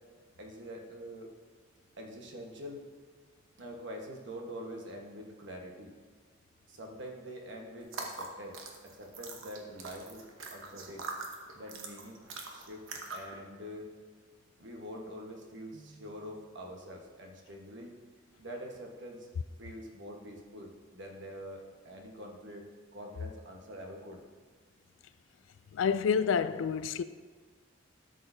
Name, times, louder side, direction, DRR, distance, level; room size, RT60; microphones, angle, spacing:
voice 1, 0.4-1.3 2.0-2.9 3.6-5.9 6.7-8.6 8.8-10.2 10.5-11.1 11.5-14.0 14.6-17.9 18.4-19.3 19.6-22.6 22.9-24.2, equal, 65° right, 1.3 m, -45 dB
sound 1, 7.8-13.4, right 3 dB, 90° right, 1.1 m, -43 dB
voice 2, 25.7-27.0, left 6 dB, 75° left, 0.3 m, -28 dB
12.5 x 6.6 x 2.7 m
head